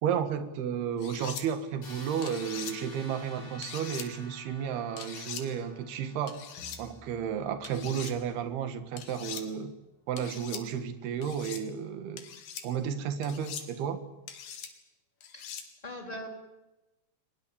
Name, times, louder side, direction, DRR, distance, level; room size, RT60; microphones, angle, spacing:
voice 1, 0.0-6.4 6.8-9.7 10.1-12.2 12.6-14.0, right 8 dB, 80° right, 9 dB, 3.7 m, -32 dB
sound 1, 1.0-1.4 2.2-2.7 3.6-4.1 5.0-5.4 6.3-6.8 7.6-8.1 9.0-9.4 10.2-10.6 11.2-11.6 12.2-12.6 13.2-13.7 14.3-14.7 15.2-15.7, left 8 dB, 90° left, 4.3 m, -42 dB
sound 2, 1.8-7.6, left 1 dB, 75° left, 8.7 m, -51 dB
sound 3, 6.6-9.3, left 1 dB, 35° left, 2.8 m, -56 dB
voice 2, 15.3-16.3, left 1 dB, 10° left, 3 dB, 3.4 m, -42 dB
23.0 x 21.5 x 8.8 m, 1.0 s
omnidirectional pair, 4.5 m